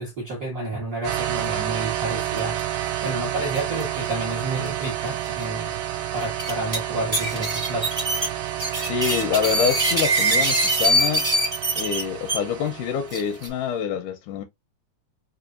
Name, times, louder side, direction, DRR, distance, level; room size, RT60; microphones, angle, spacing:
voice 1, 0.0-2.6 3.0-5.8 6.1-8.0, right 2 dB, 60° right, 0.9 m, -30 dB
sound 1, 1.0-13.6, right 12 dB, 80° right, 1.7 m, -30 dB
sound 2, 2.4-2.6 2.9-3.0 3.5-3.8 4.7-4.8 5.2-5.3 6.2-6.8 7.1-12.4 13.1-13.5, right 1 dB, 25° right, 0.5 m, -23 dB
voice 2, 8.8-11.3 11.8-14.4, left 7 dB, 80° left, 2.0 m, -26 dB
5.2 x 2.4 x 2.4 m
omnidirectional pair, 3.8 m